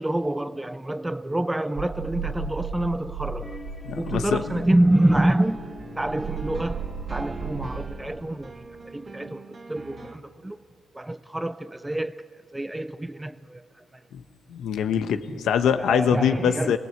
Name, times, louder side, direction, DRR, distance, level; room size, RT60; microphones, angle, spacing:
voice 1, 0.0-3.6 4.0-5.7 6.0-9.4 9.7-10.6 10.9-12.3 12.5-13.6 15.8-16.8, right 1 dB, 10° right, 0.5 m, -26 dB
sound 1, 1.8-8.0, right 5 dB, 75° right, 2.6 m, -35 dB
sound 2, 3.4-7.9, left 3 dB, 25° left, 2.1 m, -45 dB
voice 2, 3.8-4.6 14.1-14.2 14.5-16.8, left 8 dB, 75° left, 1.3 m, -24 dB
sound 3, 4.8-10.2, right 4 dB, 35° right, 1.5 m, -41 dB
27.5 x 18.5 x 8.2 m
cardioid pair, 90°, 0 cm